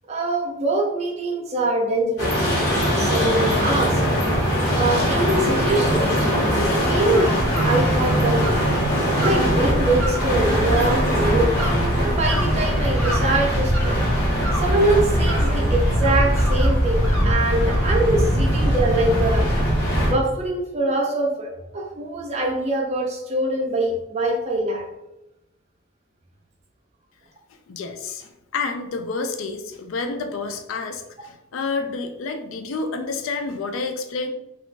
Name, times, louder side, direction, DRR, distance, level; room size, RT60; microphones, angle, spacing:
voice 1, 0.1-4.0 4.7-6.1 6.4-7.4 7.6-8.4 9.2-11.6 12.0-14.0 14.5-19.7 20.0-24.9, right 2 dB, 30° right, 0 dB, 0.5 m, -24 dB
sound 1, 2.2-20.1, equal, 50° left, 1.1 m, -21 dB
sound 2, 6.9-17.9, right 1 dB, 10° left, 0.7 m, -35 dB
voice 2, 27.7-34.3, left 4 dB, 75° left, 6 dB, 0.3 m, -29 dB
3.0 x 2.4 x 3.2 m, 0.92 s
head